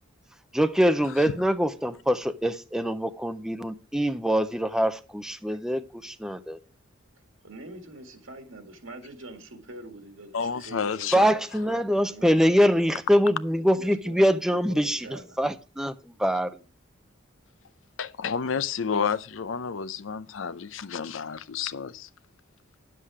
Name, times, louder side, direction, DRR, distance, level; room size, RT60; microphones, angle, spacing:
voice 1, 0.5-6.6 11.1-16.6, equal, 5° right, 0.4 m, -24 dB
voice 2, 7.4-11.7 12.0-12.6 13.8-15.4, right 2 dB, 80° right, 1.9 m, -44 dB
voice 3, 10.3-11.3 18.0-22.1, left 6 dB, 75° left, 0.6 m, -30 dB
10.0 x 7.6 x 4.8 m
head